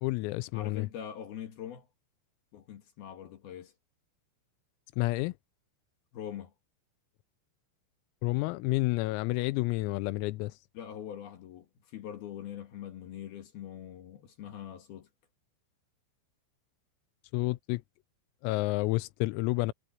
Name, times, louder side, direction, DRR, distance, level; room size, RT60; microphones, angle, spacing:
voice 1, 0.0-0.9 5.0-5.3 8.2-10.5 17.3-17.8 18.4-19.7, left 21 dB, 90° left, 3.5 m, -30 dB
voice 2, 0.5-1.9 2.5-3.7 6.1-6.5 10.7-15.1, left 10 dB, 60° left, 3.0 m, -43 dB
omnidirectional pair, 6.0 m